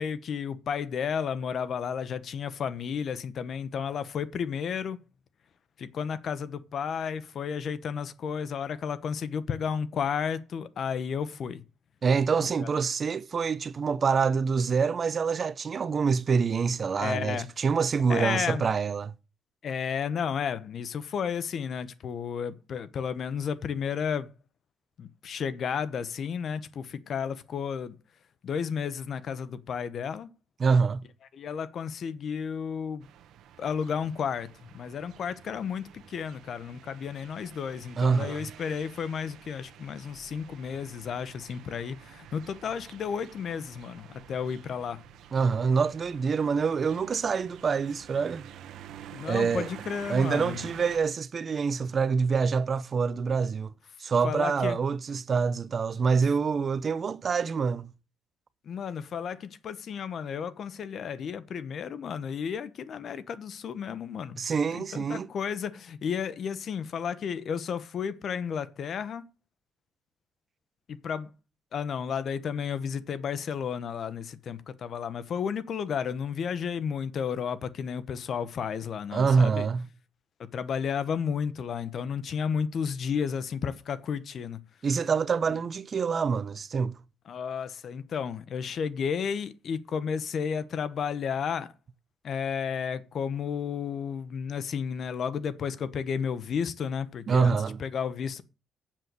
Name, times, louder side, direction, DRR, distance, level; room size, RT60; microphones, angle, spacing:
voice 1, 0.0-5.0 5.8-11.6 12.6-12.7 17.0-17.5 18.1-18.7 19.6-24.3 25.0-28.0 28.4-30.3 31.3-33.1 33.6-45.0 49.1-50.7 54.2-54.8 58.6-64.4 64.7-69.2 70.9-71.3 71.7-79.7 80.5-84.6 85.5-85.6 87.3-91.7 92.2-98.4, left 7 dB, 60° left, 0.9 m, -32 dB
voice 2, 12.0-19.1 30.6-31.0 38.0-38.5 45.3-48.5 49.2-49.7 50.1-53.7 54.0-57.9 64.4-65.3 79.1-79.9 84.8-86.9 97.3-97.8, right 5 dB, 45° right, 0.7 m, -26 dB
sound 1, 33.0-51.0, right 10 dB, 80° right, 1.1 m, -49 dB
7.8 x 7.5 x 6.8 m
cardioid pair, 90°, 0 cm